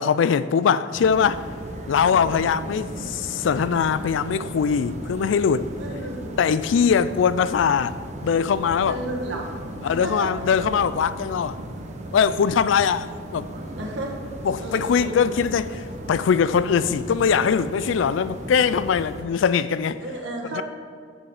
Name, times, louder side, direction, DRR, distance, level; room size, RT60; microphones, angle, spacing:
voice 1, 0.0-1.4 1.9-5.7 6.4-7.9 8.2-9.0 9.8-11.6 12.1-13.5 14.4-20.0 20.6-20.7, left 6 dB, 80° left, 0.3 m, -21 dB
sound 1, 0.9-19.2, right 1 dB, 40° right, 0.8 m, -36 dB
voice 2, 5.8-6.3 8.9-9.5 9.8-10.3 13.8-14.2 14.6-15.3 20.0-20.6, right 1 dB, 85° right, 1.5 m, -32 dB
7.4 x 7.2 x 4.9 m
head